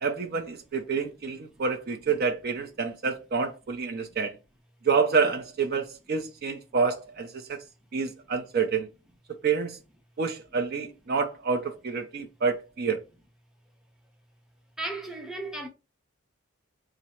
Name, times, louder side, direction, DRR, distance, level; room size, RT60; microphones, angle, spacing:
voice 1, 0.0-4.4 4.8-7.6 7.9-8.9 9.4-9.8 10.2-13.0, right 5 dB, 45° right, 0.4 m, -28 dB
voice 2, 14.8-15.7, right 2 dB, 5° right, 0.7 m, -35 dB
3.7 x 2.0 x 4.2 m
head